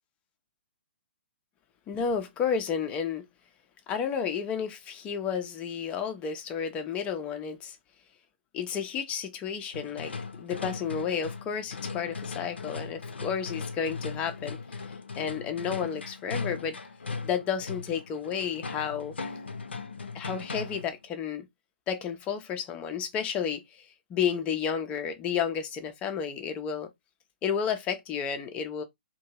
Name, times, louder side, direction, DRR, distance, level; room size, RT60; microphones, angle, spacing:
voice 1, 1.9-3.2 3.9-7.8 8.5-14.6 15.2-16.8 17.2-19.1 20.1-21.5 21.9-26.9 27.4-28.8, left 7 dB, 20° left, 0.5 m, -31 dB
sound 1, 9.7-21.0, left 4 dB, 75° left, 0.5 m, -38 dB
2.6 x 2.2 x 2.9 m
figure-of-eight pair, 120°, 6 cm